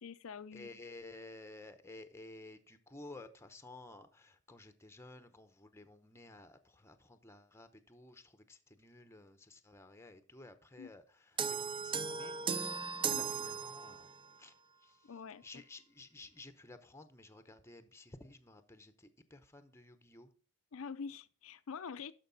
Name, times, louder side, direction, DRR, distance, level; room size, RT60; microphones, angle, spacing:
voice 1, 0.0-0.7 10.8-10.9 13.1-13.3 15.0-15.6 20.7-22.1, left 5 dB, 70° left, 0.5 m, -46 dB
voice 2, 0.5-12.4 13.1-14.1 14.4-14.5 14.8-15.1 15.4-20.3, left 2 dB, 10° left, 0.8 m, -54 dB
sound 1, 11.4-14.3, right 6 dB, 25° right, 0.4 m, -37 dB
12.5 x 5.2 x 4.0 m
head